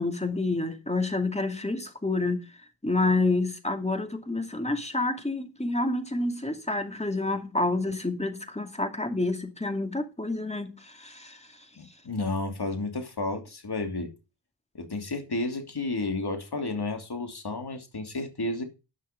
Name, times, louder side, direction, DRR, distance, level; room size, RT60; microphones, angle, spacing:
voice 1, 0.0-2.4 2.8-11.7, left 2 dB, 15° left, 2.5 m, -28 dB
voice 2, 11.8-14.1 14.7-18.6, left 2 dB, 60° left, 3.0 m, -32 dB
11.0 x 6.3 x 5.2 m
cardioid pair, 45°, 45 cm